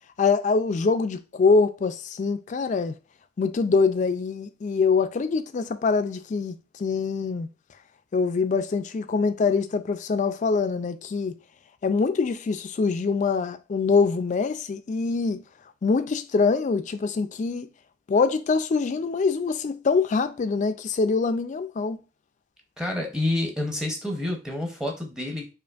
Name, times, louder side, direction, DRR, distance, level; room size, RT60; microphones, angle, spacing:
voice 1, 0.2-2.9 3.4-7.5 8.1-11.3 11.8-15.4 15.8-17.7 18.1-22.0, left 4 dB, 40° left, 0.3 m, -24 dB
voice 2, 22.8-25.5, left 1 dB, 5° right, 0.6 m, -28 dB
5.0 x 2.5 x 2.3 m
head